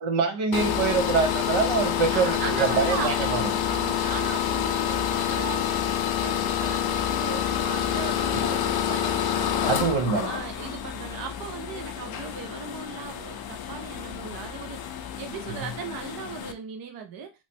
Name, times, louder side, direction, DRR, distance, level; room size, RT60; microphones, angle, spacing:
voice 1, 0.0-3.5 9.6-10.3, right 5 dB, 75° right, 0.9 m, -25 dB
sound 1, 0.5-16.5, left 9 dB, 50° left, 0.5 m, -28 dB
voice 2, 2.1-9.8 10.2-17.3, right 7 dB, 45° right, 0.5 m, -38 dB
3.1 x 2.2 x 4.1 m
cardioid pair, 145°, 49 cm